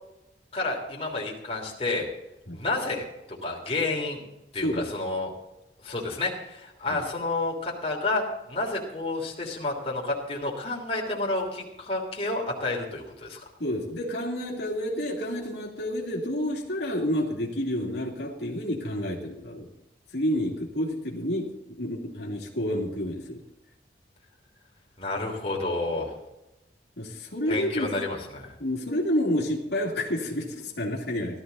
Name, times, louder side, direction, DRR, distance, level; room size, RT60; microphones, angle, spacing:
voice 1, 0.5-2.1 2.5-3.1 3.4-4.2 4.5-5.3 5.8-13.4 25.0-26.1 27.5-28.5, left 2 dB, 35° left, -1 dB, 3.1 m, -30 dB
voice 2, 13.6-19.7 20.1-23.4 27.0-27.9 28.6-31.4, equal, 75° left, -2 dB, 2.6 m, -29 dB
16.5 x 13.0 x 4.1 m, 0.90 s
head